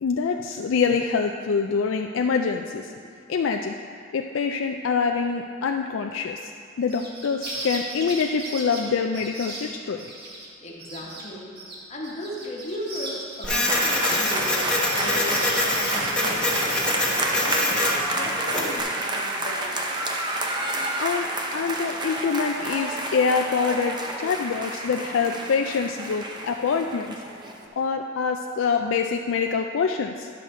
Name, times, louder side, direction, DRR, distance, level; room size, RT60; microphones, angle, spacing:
voice 1, 0.0-2.9 3.3-3.7 4.1-6.5 6.8-10.1 21.0-27.2 27.8-30.3, left 5 dB, 70° left, 4 dB, 0.4 m, -25 dB
sound 1, 6.8-10.5 10.8-11.2 11.6-16.9, right 1 dB, 55° right, 1.6 m, -37 dB
voice 2, 10.6-11.5 11.9-14.5 14.9-19.8, equal, 35° left, -3 dB, 1.1 m, -37 dB
Printer, 13.4-18.8, left 1 dB, 5° left, 1.1 m, -25 dB
sound 2, 13.5-27.6, right 1 dB, 20° right, 0.7 m, -29 dB
11.0 x 6.3 x 4.3 m, 2.3 s
head